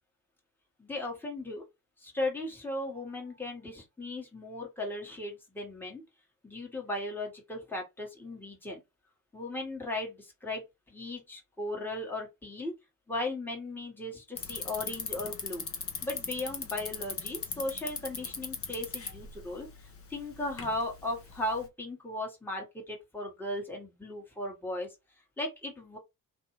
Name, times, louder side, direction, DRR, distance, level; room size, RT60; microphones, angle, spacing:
voice 1, 0.8-1.6 2.0-6.0 6.4-8.8 9.3-12.7 13.1-15.6 16.0-24.9 25.4-26.0, left 1 dB, 5° left, 1.3 m, -37 dB
Bicycle, 14.4-21.7, left 5 dB, 30° left, 0.8 m, -40 dB
2.6 x 2.3 x 3.0 m
hypercardioid pair, 50°, 44 cm